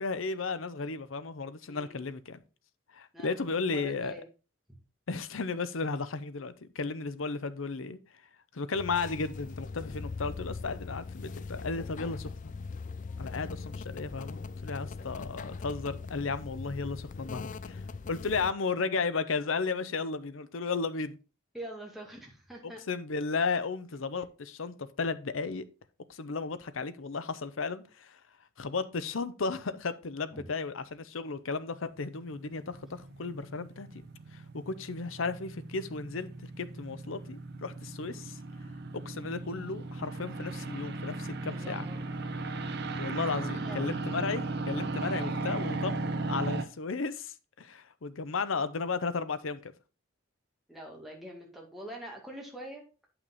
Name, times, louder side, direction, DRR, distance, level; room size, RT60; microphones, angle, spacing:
voice 1, 0.0-2.4 2.9-4.1 5.1-8.0 8.5-12.3 13.2-17.8 18.1-21.2 22.6-25.6 26.1-28.2 28.6-33.9 34.3-38.4 39.0-41.9 43.0-46.0 46.3-49.7, left 4 dB, 85° left, 0.7 m, -34 dB
voice 2, 1.7-2.1 3.1-4.3 21.5-22.8 30.3-30.5 41.5-42.1 43.4-43.9 50.7-52.8, right 1 dB, ahead, 2.1 m, -45 dB
sound 1, 8.7-18.5, left 4 dB, 40° left, 0.4 m, -40 dB
sound 2, 32.0-46.6, right 2 dB, 55° right, 0.9 m, -37 dB
8.7 x 5.8 x 4.0 m
head